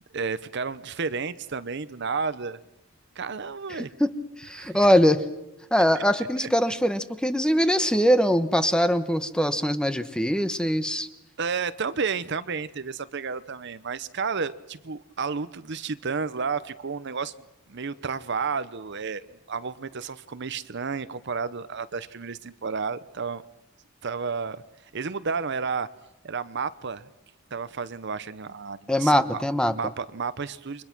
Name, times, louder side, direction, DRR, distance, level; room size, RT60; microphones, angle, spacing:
voice 1, 0.1-2.6 3.1-3.9 4.6-4.8 5.9-6.0 6.4-6.5 11.4-17.3 17.7-23.4 24.0-24.6 24.9-25.9 26.2-27.1 27.5-29.4 29.7-30.8, right 5 dB, 60° right, 0.8 m, -31 dB
voice 2, 3.8-4.1 4.4-5.2 5.7-11.1 28.9-29.7, equal, 5° left, 1.0 m, -22 dB
29.5 x 23.5 x 6.1 m
head